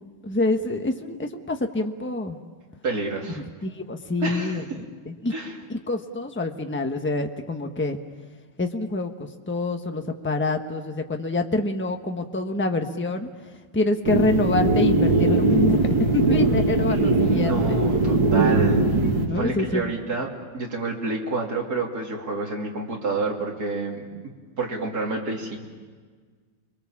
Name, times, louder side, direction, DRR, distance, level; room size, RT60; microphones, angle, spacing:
voice 1, 0.2-2.4 3.6-5.3 5.7-8.0 8.6-13.3 13.7-15.8 16.1-17.8 19.2-19.9, left 2 dB, 10° left, 5 dB, 0.9 m, -26 dB
voice 2, 2.8-3.4 4.2-4.6 5.3-5.6 17.2-24.1 24.6-25.6, right 3 dB, 50° right, -1 dB, 3.6 m, -29 dB
sound 1, 14.0-19.3, right 3 dB, 70° right, 2.8 m, -20 dB
30.0 x 22.5 x 7.4 m, 1.5 s
omnidirectional pair, 2.1 m